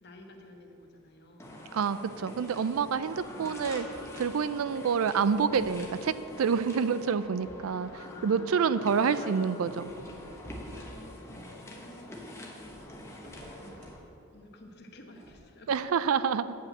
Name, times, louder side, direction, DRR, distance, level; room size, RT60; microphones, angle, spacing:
voice 1, 0.0-1.5 3.3-3.6 7.5-9.5 11.3-12.3 12.8-12.9 13.5-15.7, left 1 dB, 50° left, 3 dB, 1.0 m, -52 dB
sound 1, 1.4-14.0, left 1 dB, 10° left, 0.9 m, -46 dB
voice 2, 1.7-3.9 4.2-7.9 8.2-9.9 15.7-16.5, right 6 dB, 80° right, 14 dB, 0.4 m, -27 dB
sound 2, 2.1-2.5 2.9-4.3 5.0-6.2 7.0-7.7 8.1-8.2 8.6-8.7 9.7-11.4 12.5-14.0 15.1-15.4, equal, 35° right, 2.5 m, -51 dB
9.2 x 5.4 x 7.3 m, 2.8 s
head